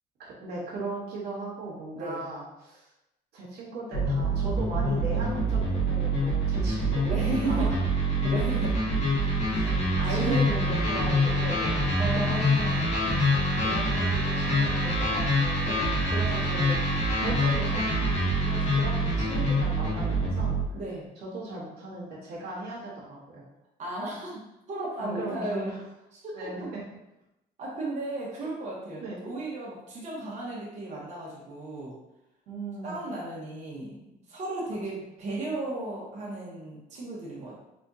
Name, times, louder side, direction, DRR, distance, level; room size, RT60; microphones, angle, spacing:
voice 1, 0.2-2.9 3.3-7.2 7.5-7.8 9.5-9.8 10.0-11.9 13.6-15.7 16.1-16.8 17.2-20.6 21.2-23.4 25.0-25.8 26.3-26.8 28.3-28.5 29.0-29.2 32.5-33.0 34.7-34.8, right 2 dB, 75° right, -5 dB, 1.4 m, -37 dB
sound 1, 3.9-20.7, equal, 40° left, 1.4 m, -25 dB
voice 2, 7.0-7.7 8.0-8.7 9.1-9.4 10.0-10.4 12.0-12.9 15.6-15.9 20.7-21.1 23.8-24.4 24.7-25.7 26.1-26.7 27.6-31.9 32.8-37.6, right 2 dB, 45° right, -6 dB, 1.1 m, -34 dB
3.5 x 3.4 x 2.7 m, 0.92 s
cardioid pair, 110°, 17 cm